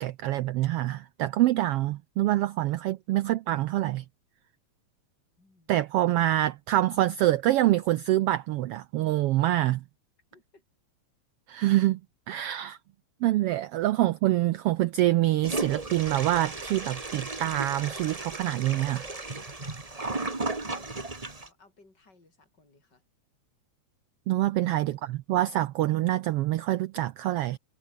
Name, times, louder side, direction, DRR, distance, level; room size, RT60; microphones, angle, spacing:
voice 1, 0.0-4.0 5.7-9.8 11.5-12.0 12.3-12.8 13.2-19.1 24.3-27.6, right 15 dB, 90° right, 1.3 m, -26 dB
voice 2, 5.4-5.8 10.3-10.6 20.3-23.0 24.3-24.6 25.0-25.2, left 3 dB, 35° left, 7.7 m, -62 dB
Toilet flush, 15.4-21.5, right 3 dB, 15° right, 1.3 m, -35 dB
omnidirectional pair, 3.3 m